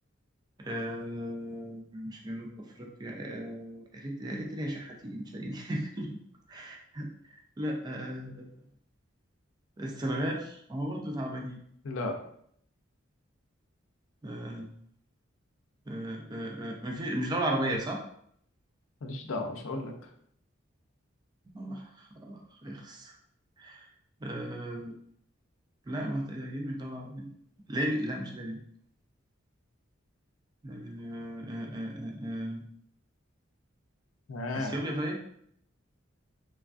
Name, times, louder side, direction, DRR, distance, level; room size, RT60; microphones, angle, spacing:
voice 1, 0.6-6.1 6.5-8.5 9.8-11.6 14.2-14.7 15.9-18.0 21.5-23.2 23.6-23.9 24.2-24.9 25.9-27.3 27.7-28.6 30.6-32.6 34.5-35.2, right 1 dB, 20° right, 1 dB, 0.3 m, -35 dB
voice 2, 11.8-12.2 19.0-20.1 34.3-34.8, left 2 dB, 75° left, 3 dB, 0.5 m, -34 dB
3.2 x 2.3 x 2.4 m, 0.67 s
head